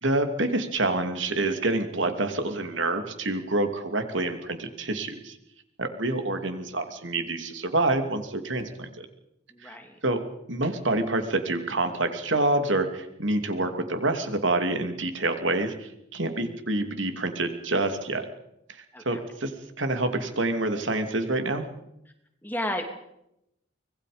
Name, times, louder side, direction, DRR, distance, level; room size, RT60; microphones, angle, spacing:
voice 1, 0.0-5.4 5.8-9.1 9.6-9.8 10.0-10.2 10.5-18.3 19.0-19.5 19.8-21.7, right 2 dB, 70° right, 6 dB, 2.7 m, -27 dB
voice 2, 9.5-10.0 18.9-19.2 22.4-22.8, left 1 dB, 10° left, 4 dB, 2.7 m, -32 dB
25.5 x 20.5 x 5.2 m, 0.80 s
head